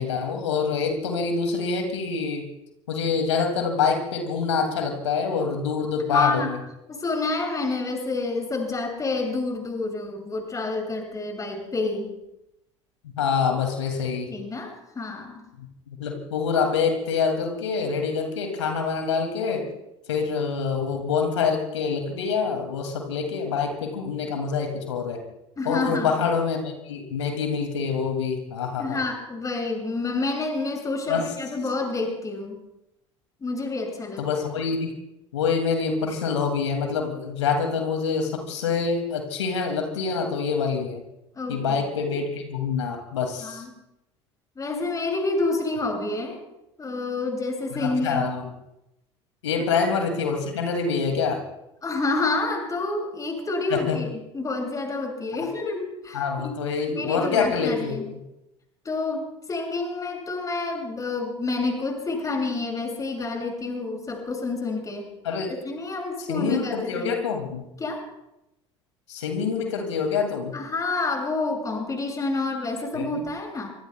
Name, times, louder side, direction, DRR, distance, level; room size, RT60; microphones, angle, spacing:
voice 1, 0.0-2.4 2.9-6.6 13.0-14.3 15.9-19.6 20.1-25.2 25.6-29.0 31.1-31.3 34.2-34.9 35.3-41.0 41.5-43.6 47.7-48.4 49.4-51.4 53.7-54.0 56.1-58.0 65.2-65.5 66.3-67.6 69.1-70.5 72.9-73.1, left 5 dB, 70° left, 4 dB, 2.4 m, -26 dB
voice 2, 6.0-6.5 6.9-12.1 14.3-15.4 25.6-26.1 28.8-32.6 33.4-34.3 41.3-41.8 43.4-43.7 44.6-46.4 46.8-48.3 51.8-54.1 54.3-56.6 56.9-58.1 58.8-65.1 65.6-67.1 67.8-68.0 70.5-73.7, left 3 dB, 20° left, 0 dB, 6.6 m, -28 dB
25.0 x 25.0 x 2.3 m, 0.88 s
figure-of-eight pair, 70°, 15 cm